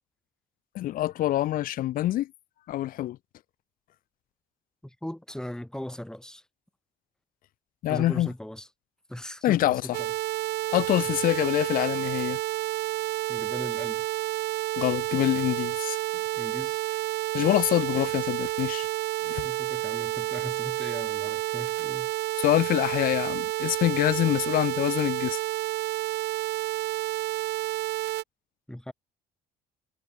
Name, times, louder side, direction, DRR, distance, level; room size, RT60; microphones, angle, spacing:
voice 1, 0.7-2.3 2.7-3.2 7.8-8.3 9.4-9.8 10.7-12.4 14.8-16.0 17.3-18.9 19.2-19.5 22.4-25.4, left 14 dB, 55° left, 0.4 m, -25 dB
voice 2, 4.8-6.4 7.9-8.7 9.1-10.1 11.0-11.1 13.3-14.0 16.3-16.8 19.4-22.1 28.7-28.9, left 1 dB, 5° left, 5.0 m, -39 dB
sound 1, 9.9-28.2, right 17 dB, 80° right, 1.9 m, -30 dB
cardioid pair, 110°, 17 cm